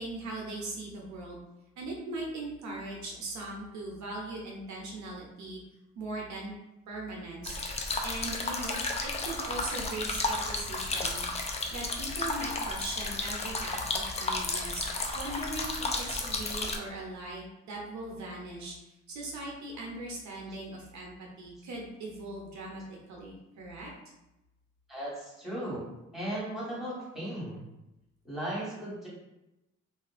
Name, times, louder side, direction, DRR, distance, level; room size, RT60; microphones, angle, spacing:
voice 1, 0.0-1.4 1.8-5.6 5.9-6.5 6.9-7.6 8.0-11.2 11.7-14.8 15.1-18.7 19.1-23.9, right 2 dB, 70° right, -2 dB, 0.7 m, -39 dB
sound 1, 7.5-16.8, left 3 dB, 20° left, 0.4 m, -33 dB
voice 2, 24.9-25.8 26.1-27.6 28.2-29.1, right 1 dB, ahead, -7 dB, 1.3 m, -36 dB
2.6 x 2.4 x 2.4 m, 0.94 s
cardioid pair, 90°, 30 cm